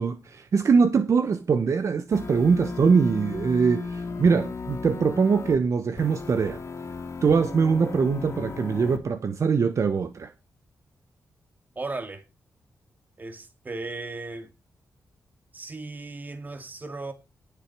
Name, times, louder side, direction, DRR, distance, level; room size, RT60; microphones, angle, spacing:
voice 1, 0.0-6.6 7.2-10.3, right 5 dB, 55° right, 1.1 m, -22 dB
sound 1, 2.1-5.6 6.0-9.0, left 4 dB, 50° left, 2.5 m, -36 dB
voice 2, 11.8-12.3 13.2-14.5 15.5-17.1, right 3 dB, 30° right, 2.2 m, -36 dB
18.5 x 7.1 x 4.7 m
cardioid pair, 100°, 6 cm